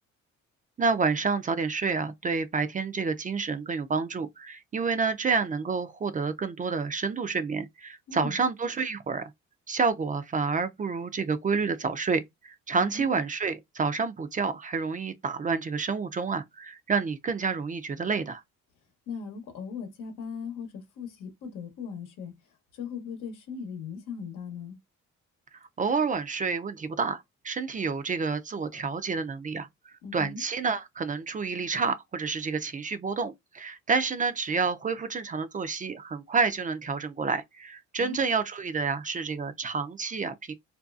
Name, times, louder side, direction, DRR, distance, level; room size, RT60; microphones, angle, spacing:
voice 1, 0.8-9.3 9.7-18.4 25.8-40.5, right 4 dB, 25° right, 0.4 m, -29 dB
voice 2, 12.8-13.2 19.1-22.3 22.7-24.8 30.0-30.4 38.0-38.3, left 6 dB, 90° left, 0.9 m, -38 dB
2.5 x 2.3 x 2.3 m
cardioid pair, 90°, 30 cm